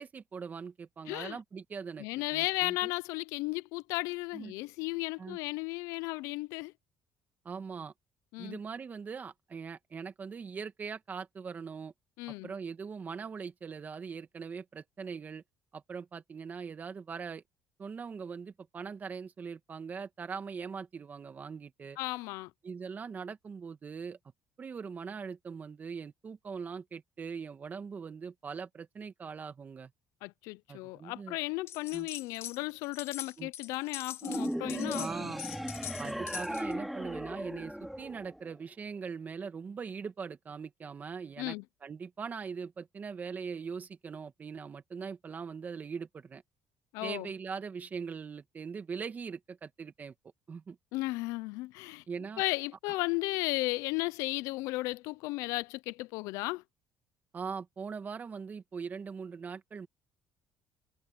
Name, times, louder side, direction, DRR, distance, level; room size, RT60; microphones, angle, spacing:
voice 1, 0.0-2.9 4.3-4.5 5.2-5.4 7.4-7.9 8.4-11.9 12.4-15.4 15.7-17.4 17.8-22.0 22.6-24.2 24.6-29.9 30.7-31.4 31.9-32.1 33.4-33.5 34.9-35.4 36.0-41.6 41.8-46.4 47.0-50.1 50.5-50.8 52.1-52.4 57.3-59.9, right 5 dB, 35° right, 2.2 m, -41 dB
voice 2, 1.1-1.4 2.0-6.7 8.3-8.6 12.2-12.5 22.0-22.5 30.2-35.3 41.4-41.6 46.9-47.3 50.9-52.0 52.4-56.6, left 21 dB, 90° left, 0.5 m, -35 dB
sound 1, 31.7-32.6 32.8-36.7, left 11 dB, 60° left, 4.3 m, -43 dB
sound 2, 34.2-38.7, equal, ahead, 2.9 m, -37 dB
cardioid pair, 110°, 5 cm